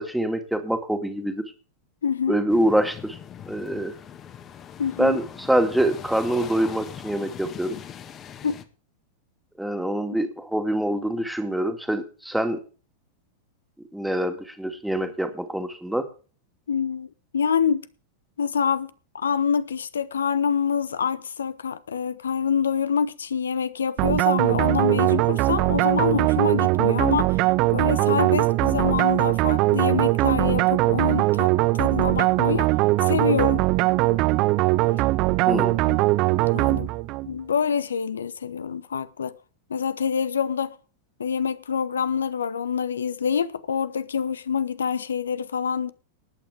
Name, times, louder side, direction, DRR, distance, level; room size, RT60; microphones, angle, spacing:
voice 1, 0.0-1.4 2.3-3.2 3.5-3.9 5.0-7.8 9.6-12.6 13.9-16.0 35.5-35.7, right 1 dB, ahead, 2.1 m, -25 dB
voice 2, 2.0-2.4 4.8-5.2 8.4-8.5 16.7-17.1 17.3-17.9 18.4-32.7 33.0-33.7 35.5-36.0 36.3-36.9 37.2-39.4 39.7-40.8 41.2-45.9, left 7 dB, 70° left, 0.8 m, -26 dB
sound 1, 2.5-8.6, left 8 dB, 30° left, 1.6 m, -41 dB
sound 2, 24.0-37.3, right 20 dB, 40° right, 0.5 m, -21 dB
19.5 x 8.7 x 3.5 m
figure-of-eight pair, 90°, 0 cm